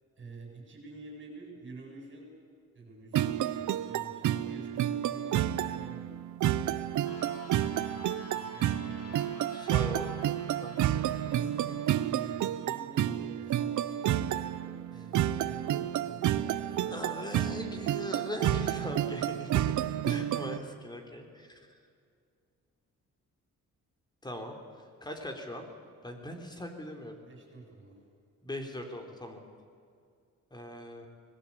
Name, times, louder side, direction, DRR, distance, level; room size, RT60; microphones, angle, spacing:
voice 1, 0.1-2.3 2.7-3.4 3.8-6.1 8.3-9.2 11.1-17.0 18.8-19.4 27.2-28.0, right 3 dB, 40° right, 0 dB, 7.9 m, -48 dB
sound 1, 3.1-20.6, right 12 dB, 85° right, 0.8 m, -30 dB
sound 2, 7.0-12.3, left 2 dB, 55° left, 2.9 m, -50 dB
voice 2, 9.5-10.2 10.6-11.1 16.9-19.8 20.1-21.6 24.2-24.6 25.0-25.7 26.0-27.2 28.4-29.4 30.5-31.1, left 1 dB, 15° left, 4 dB, 3.6 m, -40 dB
25.5 x 20.5 x 8.6 m, 2.2 s
cardioid pair, 140°, 29 cm